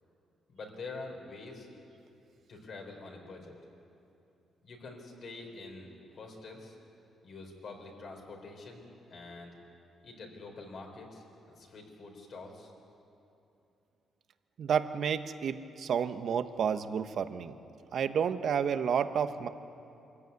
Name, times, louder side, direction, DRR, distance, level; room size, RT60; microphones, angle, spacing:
voice 1, 0.5-1.7 2.5-3.5 4.6-5.9 6.1-6.8 7.2-9.6 10.0-12.7, left 3 dB, 50° left, 1 dB, 4.1 m, -46 dB
voice 2, 14.6-17.5 17.9-19.5, right 7 dB, 55° right, 10 dB, 0.9 m, -30 dB
24.5 x 14.5 x 9.5 m, 2.8 s
cardioid pair, 140°, 0 cm